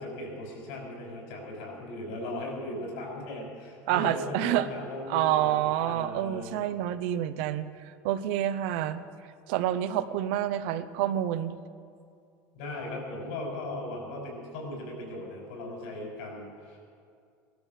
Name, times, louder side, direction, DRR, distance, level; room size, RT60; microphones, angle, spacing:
voice 1, 0.0-6.6 12.5-16.8, left 1 dB, 80° left, 0 dB, 5.5 m, -38 dB
voice 2, 3.9-4.7 5.1-7.6 8.0-9.0 9.5-11.6, right 12 dB, 70° right, 12 dB, 0.8 m, -28 dB
17.5 x 12.5 x 6.6 m, 2.3 s
cardioid pair, 175°, 6 cm